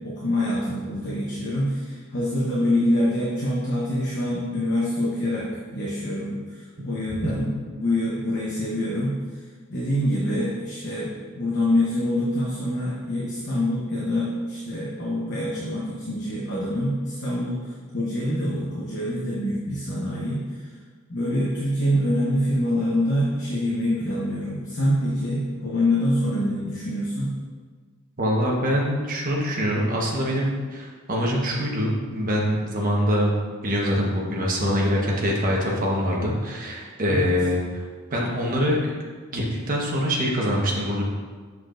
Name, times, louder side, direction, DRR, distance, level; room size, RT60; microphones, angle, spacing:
voice 1, 0.0-7.5 7.7-9.4 9.7-20.7 21.1-27.4 37.1-37.3, left 1 dB, 55° left, -5 dB, 1.0 m, -25 dB
voice 2, 28.2-33.4 33.6-37.8 38.1-38.9 39.3-41.0, equal, 40° right, -3 dB, 1.2 m, -24 dB
7.2 x 6.2 x 2.6 m, 1.5 s
head